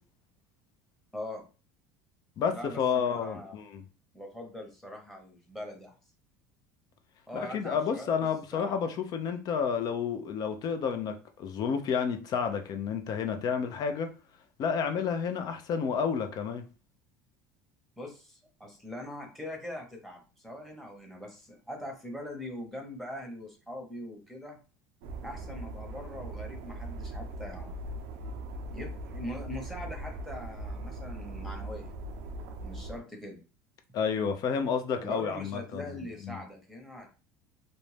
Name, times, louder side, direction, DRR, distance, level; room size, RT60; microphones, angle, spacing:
voice 1, 1.1-1.4 2.5-3.6 4.1-5.9 7.3-8.3 8.5-8.9 18.0-24.6 25.2-27.8 28.7-31.9 32.6-33.4 35.0-37.1, left 1 dB, ahead, 1.0 m, -42 dB
voice 2, 2.4-3.8 7.3-14.1 14.6-16.7 33.9-36.4, left 6 dB, 45° left, 0.5 m, -30 dB
sound 1, 25.0-33.0, right 1 dB, 75° right, 0.5 m, -40 dB
2.5 x 2.1 x 3.3 m
supercardioid pair, 100°, 9 cm